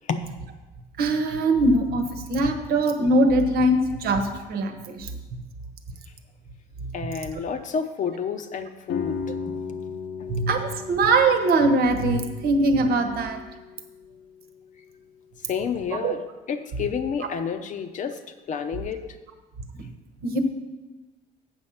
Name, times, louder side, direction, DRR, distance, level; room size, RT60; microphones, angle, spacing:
voice 1, 1.0-5.1 10.3-13.4 16.0-16.1 20.2-20.4, right 2 dB, 65° right, 7 dB, 1.1 m, -22 dB
voice 2, 6.9-9.2 9.7-9.8 15.5-16.2 16.5-18.2 18.5-19.0, left 6 dB, 50° left, 8 dB, 0.7 m, -29 dB
sound 1, 8.9-14.7, left 6 dB, 80° left, 0.9 m, -36 dB
8.0 x 6.3 x 5.7 m, 1.2 s
cardioid pair, 110°, 17 cm